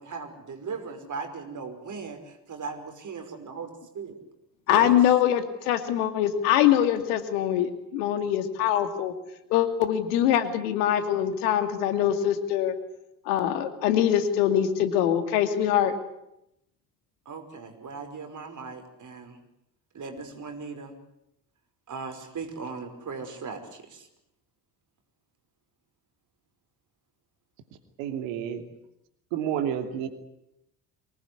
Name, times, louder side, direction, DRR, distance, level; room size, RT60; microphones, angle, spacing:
voice 1, 0.0-4.2 4.7-4.9 17.3-19.4 19.9-21.0 21.9-24.1, right 5 dB, 40° right, 6 dB, 5.5 m, -38 dB
voice 2, 4.7-9.1 9.5-12.7 13.3-16.0, left 10 dB, 70° left, 9 dB, 2.6 m, -23 dB
voice 3, 28.0-28.6 29.3-30.1, right 9 dB, 65° right, 7 dB, 2.9 m, -29 dB
24.5 x 19.5 x 9.8 m, 0.83 s
figure-of-eight pair, 55°, 48 cm